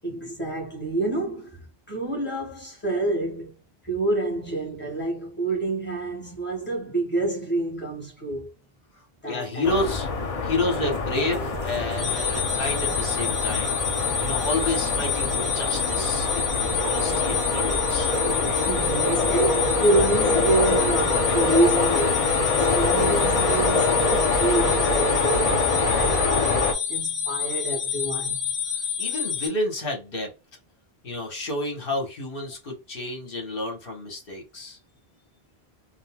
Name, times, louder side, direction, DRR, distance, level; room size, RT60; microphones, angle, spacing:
voice 1, 0.0-3.6 3.8-8.5 9.2-9.7 18.5-22.2 22.6-26.6 26.9-28.4, right 2 dB, 10° left, 1.3 m, -27 dB
voice 2, 9.2-10.1 10.4-13.8 14.2-18.1 29.0-30.3 31.0-34.8, left 2 dB, 60° left, 1.4 m, -30 dB
sound 1, 9.6-26.7, left 3 dB, 45° left, 0.6 m, -25 dB
sound 2, 10.7-26.4, right 7 dB, 60° right, 0.7 m, -38 dB
sound 3, 12.0-29.5, left 7 dB, 80° left, 1.0 m, -28 dB
4.0 x 2.1 x 2.2 m
omnidirectional pair, 1.1 m